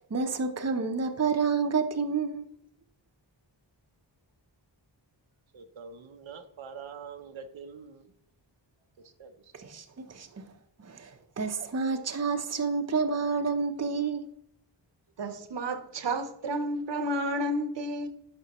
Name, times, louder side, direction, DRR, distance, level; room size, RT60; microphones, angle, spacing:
voice 1, 0.1-2.5 9.5-10.4 10.8-14.2, right 5 dB, 35° right, 0.7 m, -29 dB
voice 2, 5.5-8.1 9.0-9.5, right 6 dB, 90° right, 0.8 m, -45 dB
voice 3, 15.2-18.1, right 1 dB, 65° right, 1.0 m, -31 dB
11.0 x 5.2 x 3.0 m
wide cardioid pair, 100°, 46 cm